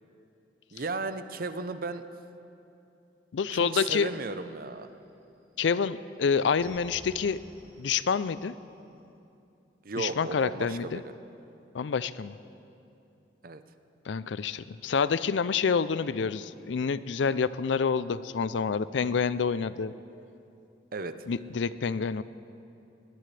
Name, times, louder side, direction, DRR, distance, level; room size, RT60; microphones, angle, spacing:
voice 1, 0.7-2.0 3.5-4.9 9.8-10.9 13.4-13.6 20.9-21.2, right 3 dB, 55° right, 10 dB, 0.7 m, -35 dB
voice 2, 3.3-4.1 5.6-7.4 7.8-8.6 10.0-11.0 11.7-12.4 14.1-19.9 21.3-22.2, left 6 dB, 85° left, 16 dB, 0.4 m, -28 dB
sound 1, 3.5-5.2 5.5-9.0, equal, 90° right, 4.1 m, -54 dB
21.0 x 19.0 x 3.3 m, 2.7 s
head